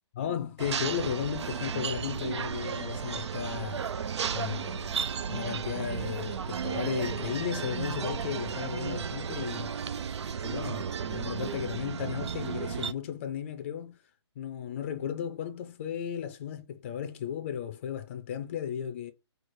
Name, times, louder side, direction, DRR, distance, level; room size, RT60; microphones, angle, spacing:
voice 1, 0.2-3.9 4.3-5.0 5.3-9.7 10.4-14.0 14.4-19.1, left 9 dB, 25° left, 0.5 m, -35 dB
sound 1, 0.6-12.9, right 7 dB, 70° right, 0.4 m, -34 dB
4.6 x 2.4 x 4.3 m
hypercardioid pair, 165°, 15 cm